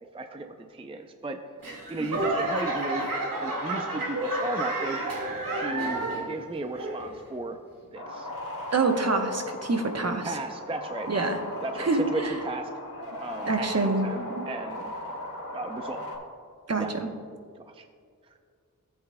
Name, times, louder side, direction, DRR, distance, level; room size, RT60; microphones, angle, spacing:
voice 1, 0.1-1.4 1.9-3.1 3.4-5.0 5.6-7.6 7.9-8.3 10.2-11.1 11.6-12.7 13.2-14.9 15.5-16.0 16.8-16.9 17.6-17.9 18.3-18.4, right 2 dB, 15° right, 6 dB, 0.4 m, -35 dB
Laughter / Clapping / Crowd, 1.6-6.4 6.7-7.3 7.8-7.9, right 2 dB, 75° right, 1.9 m, -30 dB
sound 1, 7.9-16.2, left 1 dB, 75° left, 1.9 m, -37 dB
voice 2, 8.7-10.4 11.1-11.4 11.8-12.3 13.5-14.4 16.7-17.1, right 3 dB, 50° right, 4 dB, 0.9 m, -26 dB
15.0 x 7.9 x 2.2 m, 2.2 s
wide cardioid pair, 85°, 34 cm